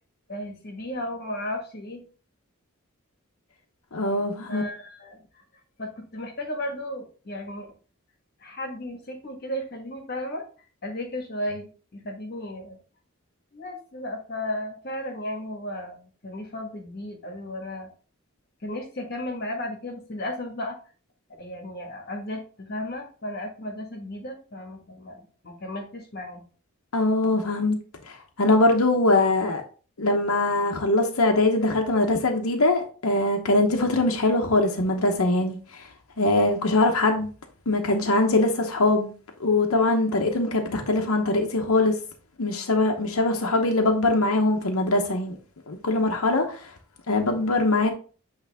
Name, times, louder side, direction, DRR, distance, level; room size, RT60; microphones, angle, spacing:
voice 1, 0.3-2.0 4.5-5.2 5.8-7.7 8.4-10.4 10.8-12.8 13.5-17.9 18.6-20.8 21.4-26.4, left 1 dB, 45° left, 1.5 m, -34 dB
voice 2, 3.9-4.6 26.9-27.8 28.1-29.6 30.0-35.9 36.2-37.3 37.7-39.1 39.4-41.9 42.4-45.4 45.7-46.7 47.1-47.9, left 2 dB, 90° left, 0.9 m, -22 dB
8.2 x 3.3 x 3.5 m
head